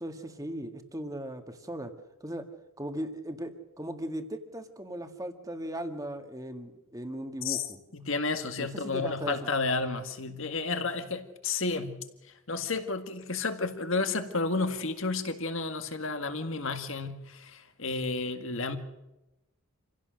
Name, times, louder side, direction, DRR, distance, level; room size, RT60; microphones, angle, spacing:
voice 1, 0.0-1.9 2.2-2.4 2.8-7.8 8.6-9.5, right 1 dB, 15° right, 1.8 m, -38 dB
voice 2, 7.9-12.0 12.5-18.8, left 3 dB, 60° left, 1.9 m, -31 dB
27.5 x 16.5 x 6.5 m
head